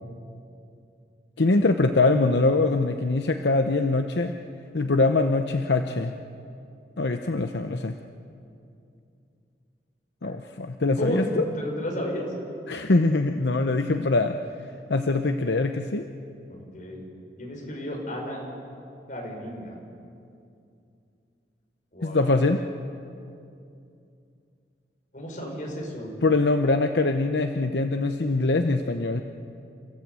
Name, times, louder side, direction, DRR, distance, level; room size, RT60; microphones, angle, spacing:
voice 1, 1.4-4.3 4.7-6.1 7.0-8.0 10.2-11.4 12.7-14.4 14.9-16.1 22.0-22.6 26.2-29.2, left 3 dB, 75° left, 6 dB, 0.8 m, -23 dB
voice 2, 11.0-12.3 16.5-17.0 17.4-18.4 19.1-19.8 21.9-22.3 25.1-26.1, equal, 45° left, -1 dB, 5.7 m, -32 dB
29.0 x 15.5 x 8.2 m, 2.6 s
head